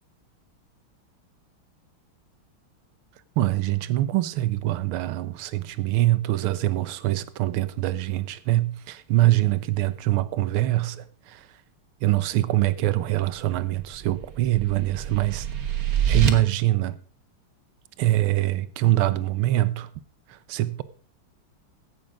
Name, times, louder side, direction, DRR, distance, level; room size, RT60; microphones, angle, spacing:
voice 1, 3.4-11.4 12.0-15.5 16.1-17.0 18.0-19.9 20.5-20.8, right 15 dB, 85° right, 1.7 m, -24 dB
sound 1, 13.7-16.3, right 8 dB, 50° right, 1.5 m, -26 dB
16.0 x 6.7 x 4.9 m
omnidirectional pair, 2.3 m